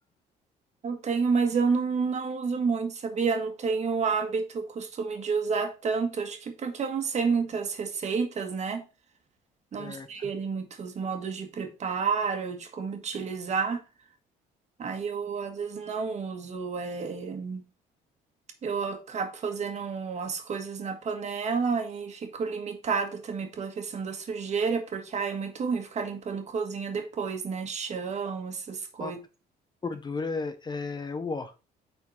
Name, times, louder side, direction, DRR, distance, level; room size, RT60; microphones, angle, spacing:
voice 1, 0.8-8.8 9.7-13.8 14.8-17.6 18.6-29.2, right 5 dB, 40° right, 1.6 m, -30 dB
voice 2, 29.8-31.5, left 4 dB, 25° left, 0.7 m, -33 dB
9.1 x 4.3 x 4.1 m
cardioid pair, 110°, 17 cm